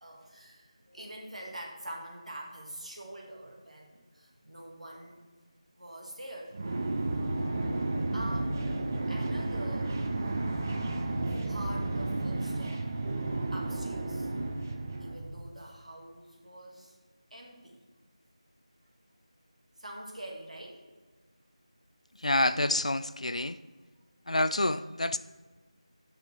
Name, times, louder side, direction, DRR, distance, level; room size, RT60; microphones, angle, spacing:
voice 1, 0.0-5.2 5.8-6.6 8.1-8.6 9.1-10.0 11.3-12.9 13.5-14.3 15.0-17.0 17.3-17.8 19.8-20.8, right 1 dB, 75° right, 1.9 m, -45 dB
sound 1, 6.5-15.5, right 2 dB, 25° right, 0.5 m, -32 dB
voice 2, 22.2-23.6 24.3-25.2, left 1 dB, 75° left, 0.4 m, -28 dB
6.9 x 5.4 x 6.0 m
figure-of-eight pair, 170°, 4 cm